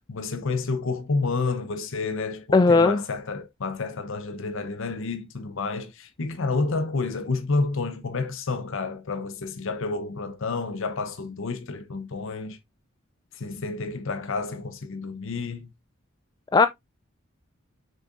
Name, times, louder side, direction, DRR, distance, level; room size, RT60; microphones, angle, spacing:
voice 1, 0.1-12.6 13.3-15.7, left 3 dB, 65° left, 0.8 m, -30 dB
voice 2, 2.5-3.0 16.5-16.7, left 3 dB, 20° left, 0.3 m, -17 dB
6.4 x 6.3 x 2.5 m
head